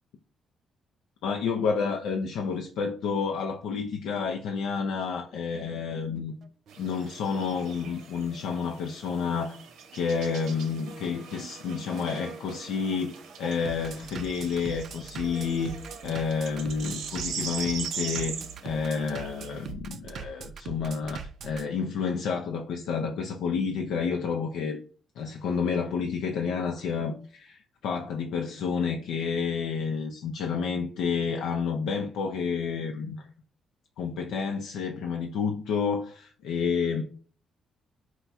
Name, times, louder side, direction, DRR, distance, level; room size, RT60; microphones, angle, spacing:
voice 1, 1.2-6.3 6.8-9.6 9.9-15.8 16.0-24.8 25.2-33.2 34.0-37.0, left 5 dB, 85° left, 0.4 m, -30 dB
Bass drum, 5.7-21.6, right 6 dB, 60° right, 0.3 m, -42 dB
sound 1, 6.7-19.7, right 6 dB, 85° right, 0.7 m, -41 dB
4.4 x 2.2 x 4.0 m
cardioid pair, 90°, 0 cm